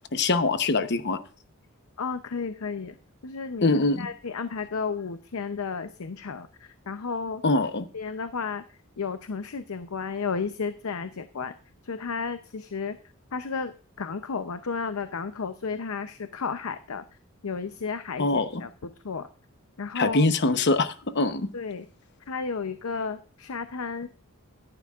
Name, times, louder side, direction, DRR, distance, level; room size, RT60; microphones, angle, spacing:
voice 1, 0.1-1.2 3.6-4.1 7.4-7.8 18.2-18.6 19.9-21.5, left 3 dB, 55° left, 10 dB, 0.9 m, -23 dB
voice 2, 2.0-3.0 3.2-3.7 4.0-7.4 7.9-8.6 9.0-11.5 11.8-13.0 13.3-17.0 17.4-19.3 19.8-20.3 21.5-21.9 22.3-24.1, left 5 dB, 85° left, 10 dB, 0.7 m, -33 dB
13.5 x 11.0 x 2.4 m, 0.37 s
head